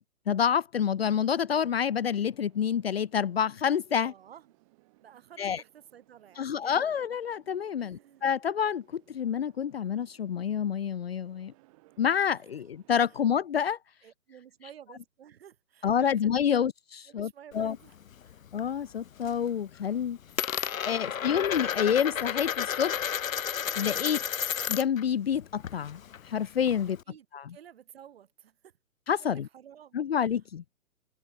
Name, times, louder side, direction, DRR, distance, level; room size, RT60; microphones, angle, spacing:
voice 1, 0.3-4.1 5.4-5.6 6.4-11.5 12.0-13.8 15.8-16.7 17.1-17.8 18.5-20.2 20.9-23.1 23.8-24.2 24.7-27.0 27.3-27.4 29.1-29.5 29.9-30.6, left 8 dB, 45° left, 1.0 m, -28 dB
sound 1, 1.4-13.2, right 23 dB, 25° right, 6.3 m, -64 dB
voice 2, 4.0-4.5 5.0-6.9 7.8-8.2 12.3-12.4 14.0-16.7 17.1-18.0 18.2-18.4 21.0-21.4 27.1-28.7 29.2-30.0, right 9 dB, 45° right, 5.8 m, -53 dB
Coin (dropping), 17.5-18.7 19.0-19.5 19.7-25.0 25.3-27.0, left 9 dB, 65° left, 0.9 m, -32 dB
hypercardioid pair, 165°, 43 cm